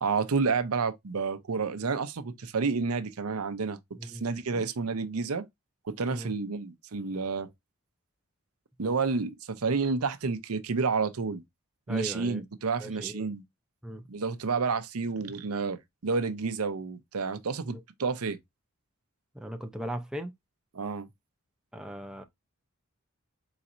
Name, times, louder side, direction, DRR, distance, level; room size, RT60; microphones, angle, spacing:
voice 1, 0.0-5.5 5.8-7.5 8.8-11.4 11.9-13.4 14.1-18.4 20.7-21.1, right 4 dB, 85° right, 0.7 m, -30 dB
voice 2, 11.9-12.4 12.8-13.3 13.8-14.0 17.6-17.8 19.3-20.3 21.7-22.2, equal, 5° right, 0.5 m, -38 dB
4.2 x 4.0 x 2.5 m
head